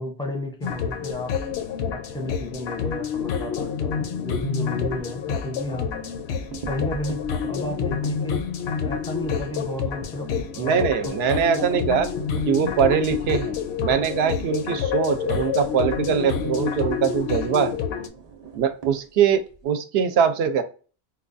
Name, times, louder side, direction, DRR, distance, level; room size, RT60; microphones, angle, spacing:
voice 1, 0.0-1.3 1.9-5.9 6.7-7.2 7.5-8.5 8.8-10.3 10.5-11.1, left 1 dB, 5° left, 2 dB, 0.5 m, -32 dB
sound 1, 0.6-18.1, left 7 dB, 70° left, 0.8 m, -28 dB
sound 2, 6.3-9.5 9.9-10.0 10.3-10.4 10.8-19.6, right 5 dB, 45° right, 0.6 m, -41 dB
voice 2, 10.6-12.1 12.4-17.8 18.6-20.6, right 7 dB, 70° right, 9 dB, 0.8 m, -22 dB
4.4 x 2.3 x 2.5 m, 0.37 s
omnidirectional pair, 1.1 m